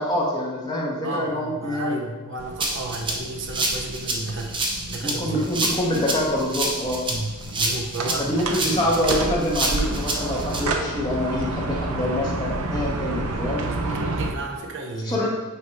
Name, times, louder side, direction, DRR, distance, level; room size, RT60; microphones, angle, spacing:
voice 1, 0.0-2.0 5.0-7.0 8.2-13.6 15.0-15.3, left 1 dB, 20° left, -4 dB, 1.3 m, -25 dB
voice 2, 1.0-5.5 7.1-8.9 13.6-15.3, right 2 dB, 60° right, 0 dB, 0.9 m, -33 dB
sound 1, 2.4-14.3, right 2 dB, 85° right, 0.7 m, -30 dB
Rattle (instrument), 2.6-10.6, right 2 dB, 25° right, 0.8 m, -27 dB
8.1 x 2.9 x 5.3 m, 1.2 s
head